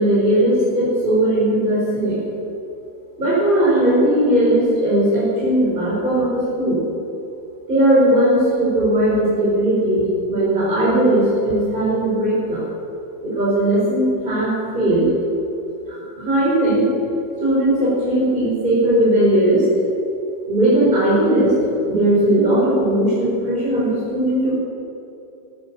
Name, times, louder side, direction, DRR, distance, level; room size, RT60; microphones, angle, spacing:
voice 1, 0.0-2.2 3.2-6.8 7.7-12.6 13.2-15.1 15.9-16.9 17.4-19.6 20.5-21.5 21.9-24.6, right 1 dB, 25° right, -8 dB, 4.6 m, -18 dB
14.5 x 12.0 x 7.3 m, 2.9 s
omnidirectional pair, 2.1 m